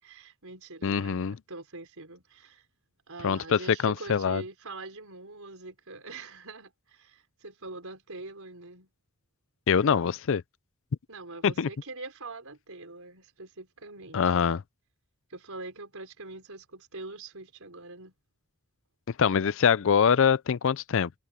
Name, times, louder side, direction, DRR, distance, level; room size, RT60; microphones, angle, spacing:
voice 1, 0.0-2.7 3.1-8.9 11.1-14.5 15.3-18.1, right 3 dB, 70° right, 5.0 m, -43 dB
voice 2, 0.8-1.4 3.2-4.4 9.7-10.4 11.4-11.7 14.1-14.6 19.2-21.2, left 7 dB, 60° left, 0.4 m, -24 dB
head